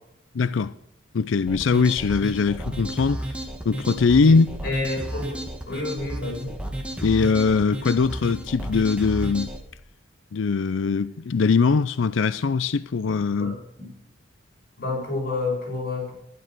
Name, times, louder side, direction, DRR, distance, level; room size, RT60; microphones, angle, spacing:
voice 1, 0.3-0.7 1.1-3.3 3.7-4.5 7.0-9.5 10.3-13.5, left 4 dB, 70° left, 0.4 m, -21 dB
sound 1, 1.5-9.6, right 1 dB, 5° right, 1.9 m, -33 dB
voice 2, 4.2-6.6 13.4-13.9 14.8-16.1, left 3 dB, 45° left, 7.0 m, -30 dB
12.0 x 11.0 x 6.0 m
head